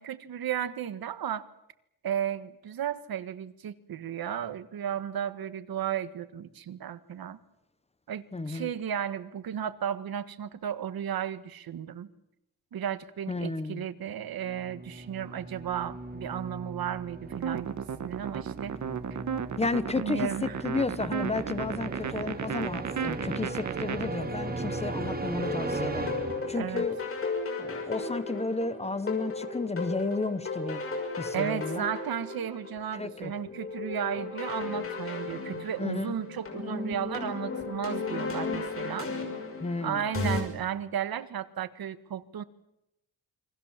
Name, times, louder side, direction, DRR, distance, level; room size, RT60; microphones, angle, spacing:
voice 1, 0.0-1.5 2.0-7.4 8.1-12.1 12.7-18.7 19.9-20.6 26.5-26.9 31.3-39.1 39.8-42.4, right 9 dB, 75° right, 13 dB, 1.6 m, -34 dB
voice 2, 8.3-8.7 13.3-13.9 19.6-26.1 26.5-27.0 27.6-30.8 31.2-31.8 32.9-33.3 35.8-36.2 39.6-40.0, left 3 dB, 15° left, 14 dB, 1.0 m, -32 dB
sound 1, 14.3-27.0, right 2 dB, 25° right, 2.7 m, -37 dB
sound 2, 17.3-24.0, right 7 dB, 50° right, 1.4 m, -33 dB
sound 3, 25.4-40.4, left 3 dB, 35° left, 6.2 m, -35 dB
29.0 x 23.5 x 7.4 m, 0.86 s
wide cardioid pair, 180°, 36 cm